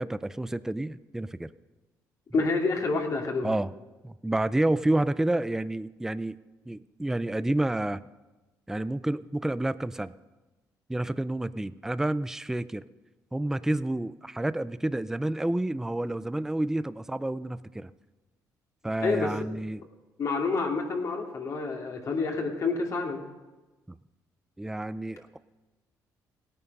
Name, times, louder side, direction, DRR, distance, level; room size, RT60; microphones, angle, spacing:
voice 1, 0.0-1.5 3.4-3.7 4.0-6.4 6.7-8.0 8.7-10.1 10.9-12.8 13.3-17.9 18.8-19.8 23.9-24.0 24.6-25.4, right 1 dB, 5° right, 15 dB, 0.4 m, -29 dB
voice 2, 2.3-3.5 19.0-19.3 20.2-23.2, left 3 dB, 50° left, 1 dB, 2.4 m, -28 dB
17.0 x 9.1 x 5.4 m, 1.1 s
cardioid pair, 90°, 7 cm